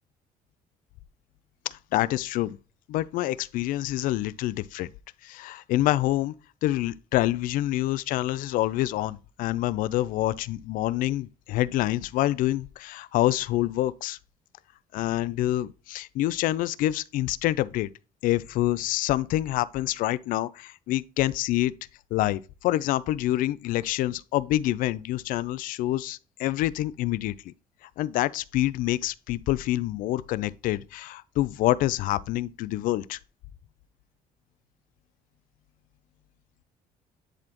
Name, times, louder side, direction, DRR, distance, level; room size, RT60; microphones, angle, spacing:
voice 1, 1.7-2.6 2.9-4.9 5.2-6.3 6.6-14.2 14.9-17.9 18.2-21.7 22.1-27.5 28.0-33.2, left 15 dB, 70° left, 0.4 m, -27 dB
10.5 x 4.1 x 2.9 m
cardioid pair, 130°, 15 cm